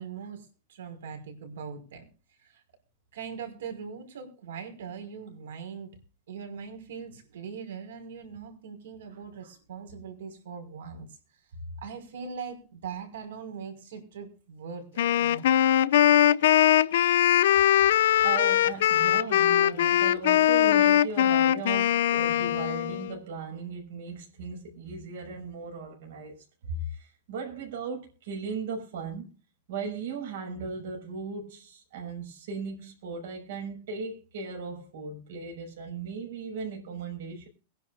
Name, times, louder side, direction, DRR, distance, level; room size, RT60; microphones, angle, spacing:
voice 1, 0.0-2.0 2.4-2.6 3.1-5.9 6.3-11.1 11.5-15.5, right 6 dB, 85° right, 5.6 m, -41 dB
Wind instrument woodwind instrument, 15.0-23.1, left 11 dB, 75° left, 0.5 m, -21 dB
voice 2, 18.2-29.3 29.7-37.5, right 4 dB, 70° right, 6.2 m, -37 dB
22.5 x 10.5 x 2.6 m
supercardioid pair, 155°, 0 cm